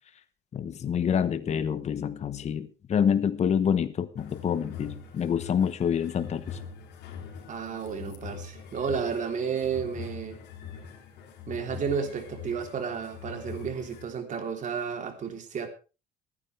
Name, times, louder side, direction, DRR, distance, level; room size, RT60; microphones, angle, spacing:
voice 1, 0.5-6.6, left 8 dB, 40° left, 12 dB, 1.1 m, -27 dB
sound 1, 4.2-14.1, left 6 dB, 80° left, 2.9 m, -43 dB
voice 2, 7.5-10.4 11.5-15.7, right 6 dB, 50° right, 5 dB, 3.5 m, -32 dB
23.0 x 10.0 x 3.4 m, 0.33 s
cardioid pair, 110°, 17 cm